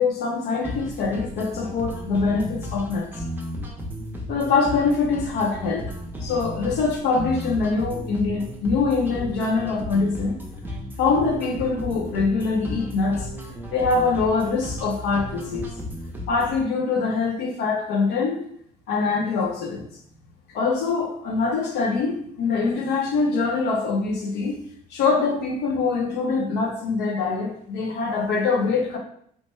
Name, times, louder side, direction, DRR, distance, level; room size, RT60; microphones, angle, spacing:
voice 1, 0.0-3.1 4.3-5.9 6.2-10.3 11.0-13.3 13.7-15.7 16.3-18.4 18.9-19.9 20.5-24.6 24.9-29.0, left 4 dB, 75° left, 1 dB, 0.7 m, -24 dB
sound 1, 0.6-16.6, equal, 10° right, 0.5 m, -34 dB
3.2 x 2.1 x 3.1 m, 0.66 s
cardioid pair, 110°, 17 cm